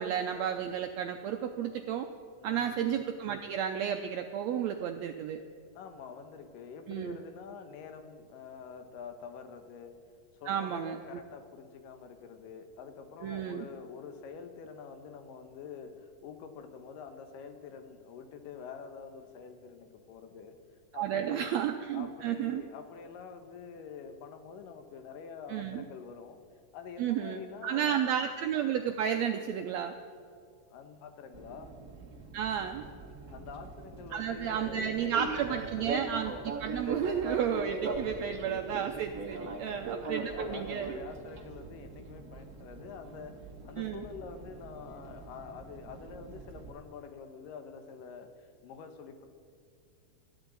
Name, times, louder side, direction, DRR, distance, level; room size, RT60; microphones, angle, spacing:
voice 1, 0.0-2.1 2.4-5.4 6.9-7.2 10.5-11.0 13.2-13.6 20.9-22.6 25.5-25.8 27.0-29.9 32.3-32.8 34.1-40.9 43.8-44.0, right 9 dB, 85° right, 6 dB, 1.5 m, -32 dB
voice 2, 2.4-3.0 5.8-10.0 10.4-20.6 20.9-26.4 26.7-28.1 30.7-31.7 33.3-36.1 38.0-38.4 39.3-43.3 43.6-49.3, left 6 dB, 85° left, 7 dB, 2.8 m, -47 dB
Fixed-wing aircraft airplane, 31.3-46.7, right 3 dB, 65° right, 0.9 m, -41 dB
19.5 x 14.0 x 4.0 m, 2.3 s
omnidirectional pair, 3.8 m